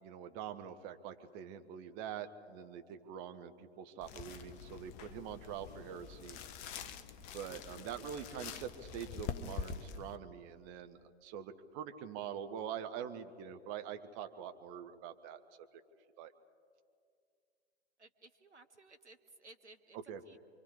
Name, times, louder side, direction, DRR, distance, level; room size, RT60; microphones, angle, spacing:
voice 1, 0.0-6.4 7.3-15.4 16.2-16.3 19.9-20.2, right 8 dB, 25° right, 9 dB, 1.1 m, -45 dB
sound 1, 4.0-10.2, left 6 dB, 20° left, 0.7 m, -45 dB
voice 2, 18.0-20.0 20.2-20.4, right 2 dB, 85° right, 8 dB, 1.2 m, -58 dB
26.5 x 24.0 x 4.9 m, 2.2 s
figure-of-eight pair, 120°, 34 cm